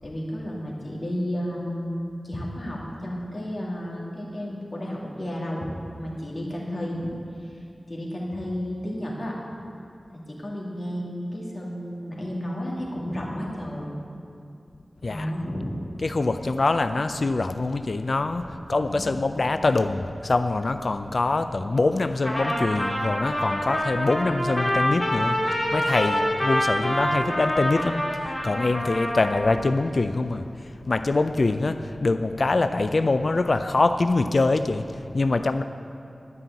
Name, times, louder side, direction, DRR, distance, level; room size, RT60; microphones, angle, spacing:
voice 1, 0.0-7.0 7.5-7.6 7.9-9.4 10.1-13.9 15.1-15.7 18.8-19.2, equal, 40° left, -3 dB, 2.5 m, -32 dB
voice 2, 16.0-35.6, left 3 dB, 60° left, 10 dB, 0.4 m, -24 dB
Trumpet, 22.2-29.6, equal, 20° left, 1.9 m, -26 dB
11.5 x 5.6 x 8.9 m, 2.6 s
wide cardioid pair, 80°, 0 cm